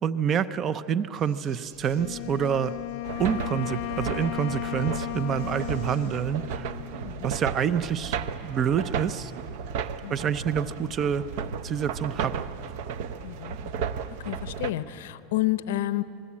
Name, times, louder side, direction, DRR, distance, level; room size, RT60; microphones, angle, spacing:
voice 1, 0.0-2.8 3.2-6.7 7.2-9.3 10.1-11.2 11.6-12.4, right 8 dB, 25° right, 15 dB, 0.6 m, -27 dB
sound 1, 1.1-6.2, right 2 dB, 90° right, 6.9 m, -54 dB
Wind instrument woodwind instrument, 1.9-7.4, left 17 dB, 50° left, 0.6 m, -35 dB
sound 2, 3.0-14.7, right 6 dB, 55° right, 0.8 m, -34 dB
voice 2, 10.0-10.3 13.2-13.9 14.2-16.0, left 15 dB, 80° left, 14 dB, 0.8 m, -30 dB
26.5 x 20.0 x 8.6 m, 2.7 s
supercardioid pair, 180°, 0 cm